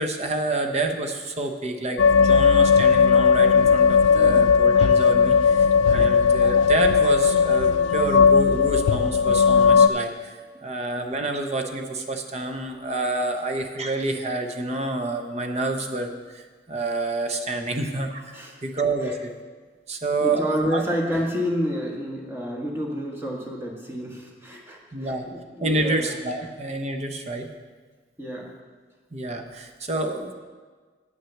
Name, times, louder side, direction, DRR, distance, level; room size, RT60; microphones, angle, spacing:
voice 1, 0.0-18.3 18.6-19.3 19.9-20.8 24.9-25.3 25.6-27.5 29.1-30.3, right 2 dB, 35° right, 5 dB, 0.9 m, -28 dB
sound 1, 2.0-9.9, left 6 dB, 90° left, 0.4 m, -17 dB
voice 2, 20.2-26.1 28.2-28.5, equal, 15° right, -1 dB, 1.5 m, -29 dB
9.5 x 6.2 x 7.2 m, 1.5 s
head